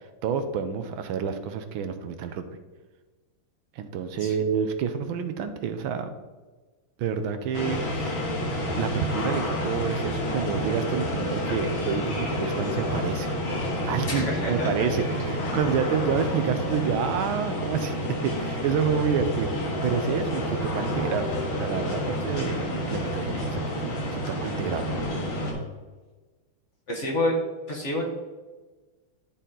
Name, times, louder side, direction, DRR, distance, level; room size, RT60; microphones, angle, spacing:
voice 1, 0.2-2.5 3.8-6.1 7.0-8.1 8.8-13.3 13.9-21.3 21.6-24.8, right 6 dB, 80° right, 8 dB, 1.5 m, -28 dB
sound 1, 7.5-25.5, equal, 80° left, 2.4 m, -29 dB
voice 2, 14.1-14.7 26.9-27.4 27.7-28.0, left 1 dB, 40° left, 0 dB, 1.4 m, -28 dB
12.0 x 4.2 x 3.8 m, 1.3 s
omnidirectional pair, 2.2 m